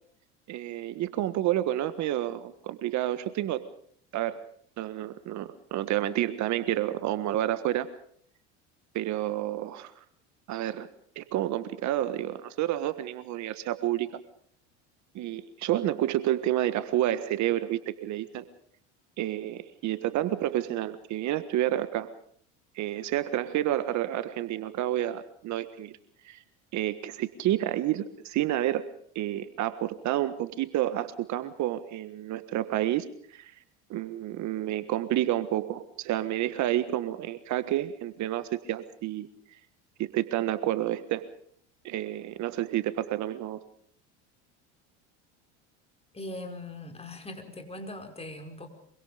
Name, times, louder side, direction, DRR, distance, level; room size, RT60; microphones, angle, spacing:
voice 1, 0.5-3.7 4.1-4.4 4.8-7.9 8.9-10.0 10.5-10.9 11.1-14.2 15.1-18.4 19.2-22.1 22.7-25.9 26.2-26.4 26.7-33.5 33.9-39.3 40.0-41.3 41.8-43.6, right 13 dB, 55° right, 12 dB, 1.6 m, -29 dB
voice 2, 46.1-48.7, left 2 dB, 15° left, 5 dB, 5.2 m, -40 dB
25.5 x 24.0 x 5.1 m, 0.62 s
supercardioid pair, 90°, 35 cm